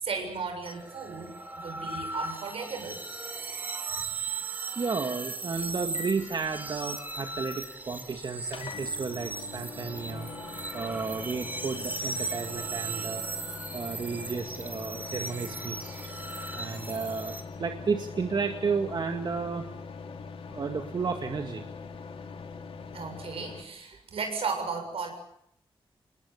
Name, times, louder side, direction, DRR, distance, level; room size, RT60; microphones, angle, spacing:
voice 1, 0.0-3.0 22.9-25.1, right 5 dB, 85° right, 5 dB, 7.3 m, -35 dB
sound 1, 0.6-17.4, right 3 dB, 20° right, 4.3 m, -37 dB
voice 2, 4.8-10.3 10.7-13.2 13.7-16.0 16.6-17.3 17.6-19.6 20.5-21.7, right 5 dB, 50° right, 5 dB, 2.1 m, -32 dB
sound 2, 5.6-23.6, left 5 dB, 75° left, 2.9 m, -43 dB
27.5 x 20.5 x 8.1 m, 0.73 s
wide cardioid pair, 125°, 10 cm